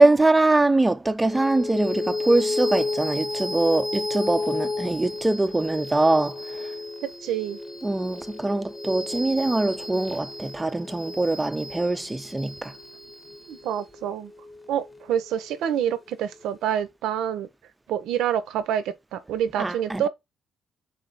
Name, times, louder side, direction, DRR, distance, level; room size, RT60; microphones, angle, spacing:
voice 1, 0.0-6.7 7.8-12.7 19.6-20.1, right 2 dB, 15° right, 0.4 m, -23 dB
sound 1, 1.3-16.0, left 2 dB, 10° left, 0.8 m, -33 dB
voice 2, 7.0-7.6 13.5-14.3 14.7-17.5 17.9-20.1, right 9 dB, 85° right, 0.5 m, -27 dB
3.6 x 3.3 x 3.9 m
cardioid pair, 90°, 0 cm